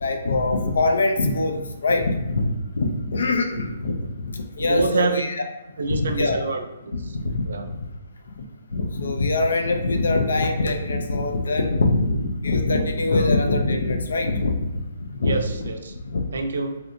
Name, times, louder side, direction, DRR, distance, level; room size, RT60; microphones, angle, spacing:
voice 1, 0.0-5.4 5.9-6.4 6.9-7.8 8.4-8.5 8.7-15.4 16.0-16.2, left 2 dB, 85° left, 4 dB, 0.5 m, -23 dB
voice 2, 4.6-5.2 5.8-6.9 7.5-7.7 13.1-13.3 15.2-15.9 16.3-16.8, right 4 dB, 75° right, 6 dB, 0.5 m, -26 dB
3.3 x 2.7 x 2.6 m, 1.0 s
hypercardioid pair, 155°, 0 cm